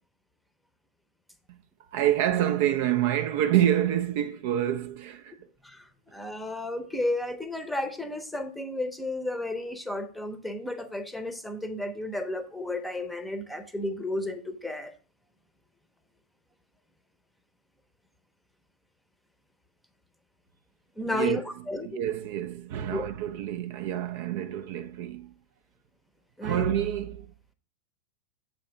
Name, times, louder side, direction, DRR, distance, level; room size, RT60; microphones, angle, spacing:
voice 1, 1.9-5.5 21.1-21.4 21.8-25.3 26.4-27.3, right 11 dB, 50° right, 0.4 m, -27 dB
voice 2, 5.6-14.9 21.0-22.0 22.9-23.0 26.4-26.7, left 1 dB, 5° left, 0.8 m, -33 dB
7.4 x 3.3 x 5.1 m
figure-of-eight pair, 90°, 0 cm